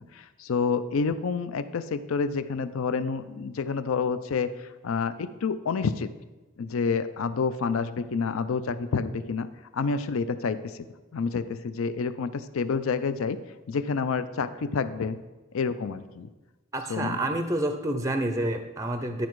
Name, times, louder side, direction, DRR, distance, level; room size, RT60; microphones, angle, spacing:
voice 1, 0.0-4.5 4.8-6.1 6.6-9.5 9.7-10.9 11.1-13.4 13.7-15.2 15.5-16.3 16.9-17.2, left 5 dB, 75° left, 13 dB, 0.5 m, -28 dB
voice 2, 16.7-19.3, right 1 dB, 15° right, 7 dB, 0.5 m, -28 dB
10.5 x 5.1 x 4.6 m, 1.1 s
head